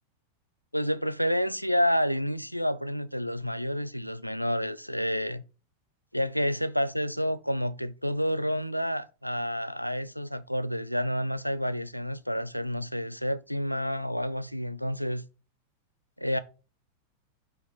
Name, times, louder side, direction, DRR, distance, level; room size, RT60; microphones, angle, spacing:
voice 1, 0.7-5.4 6.1-15.2 16.2-16.4, equal, 90° left, 0.5 m, -29 dB
7.0 x 3.4 x 4.2 m
figure-of-eight pair, 90°, 0 cm